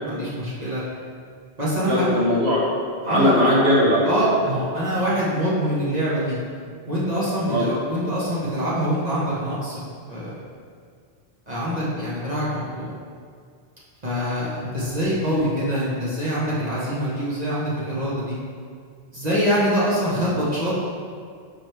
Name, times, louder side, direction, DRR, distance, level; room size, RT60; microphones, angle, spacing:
voice 1, 0.1-0.8 1.6-2.1 3.0-3.3 4.0-6.4 6.8-9.8 10.1-10.4 11.5-12.9 14.0-18.4 19.1-20.8, equal, 40° right, -9 dB, 1.3 m, -24 dB
voice 2, 1.8-2.6 3.0-4.2 7.4-7.7 20.2-20.3, left 1 dB, 85° right, -6 dB, 1.6 m, -20 dB
6.1 x 4.8 x 3.3 m, 2.1 s
omnidirectional pair, 1.1 m